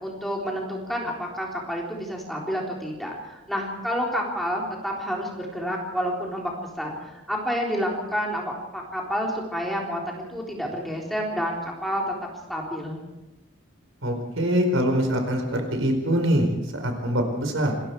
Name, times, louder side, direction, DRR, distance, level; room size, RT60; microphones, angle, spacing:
voice 1, 0.0-12.0 12.5-13.0, equal, ahead, -2 dB, 3.8 m, -29 dB
voice 2, 14.0-17.7, equal, 80° right, 4 dB, 4.7 m, -24 dB
26.5 x 21.0 x 4.7 m, 1.0 s
head